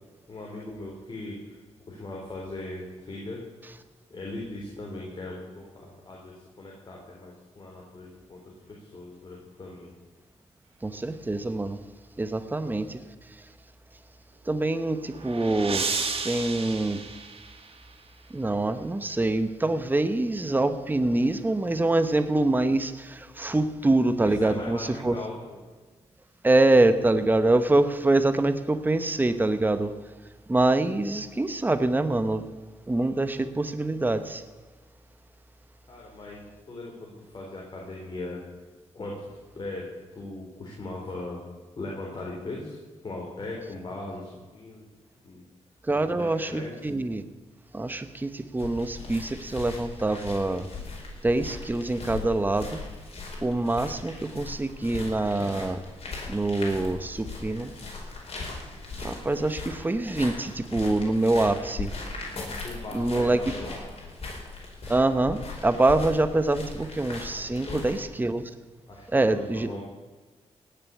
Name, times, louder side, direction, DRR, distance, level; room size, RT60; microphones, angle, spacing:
voice 1, 0.3-1.6 1.9-3.4 4.1-9.9 24.2-25.6 35.9-36.4 36.7-38.4 38.9-39.3 39.5-39.9 40.1-41.4 41.8-42.8 43.0-44.9 45.2-45.4 45.9-46.7 62.6-63.8 67.5-68.0 68.9-69.8, left 2 dB, 40° left, -3 dB, 3.8 m, -39 dB
voice 2, 10.8-11.8 12.2-13.0 14.5-15.9 16.2-17.0 18.3-25.2 26.4-29.9 30.5-32.4 32.9-34.4 45.8-47.3 47.7-50.7 51.2-52.8 53.4-55.8 56.3-57.7 59.0-61.9 62.9-63.4 64.9-68.4 69.1-69.7, right 2 dB, 15° right, 10 dB, 0.9 m, -25 dB
sound 1, 14.8-18.0, right 4 dB, 55° right, 1.9 m, -33 dB
sound 2, 48.6-68.0, left 3 dB, 60° left, 4.8 m, -39 dB
18.0 x 6.9 x 8.5 m, 1.3 s
cardioid pair, 90°, 12 cm